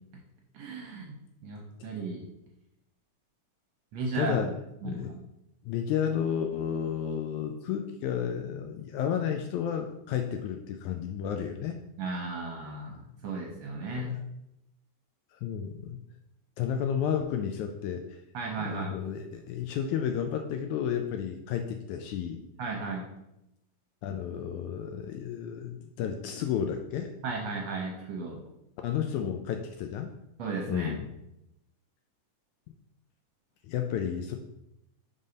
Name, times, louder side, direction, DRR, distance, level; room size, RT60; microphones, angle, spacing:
voice 1, 0.5-1.1 1.4-2.2 3.9-4.5 4.8-5.2 12.0-14.1 18.3-19.0 22.6-23.0 27.2-28.4 30.4-30.9, right 3 dB, 70° right, 0 dB, 1.7 m, -35 dB
voice 2, 4.1-4.5 4.8-5.1 5.6-11.8 13.9-14.1 15.3-16.0 16.6-18.2 18.7-22.4 24.0-27.1 28.8-30.1 30.7-31.1 33.6-34.4, left 8 dB, 80° left, 5 dB, 1.8 m, -32 dB
5.5 x 4.0 x 5.1 m, 0.84 s
omnidirectional pair, 3.7 m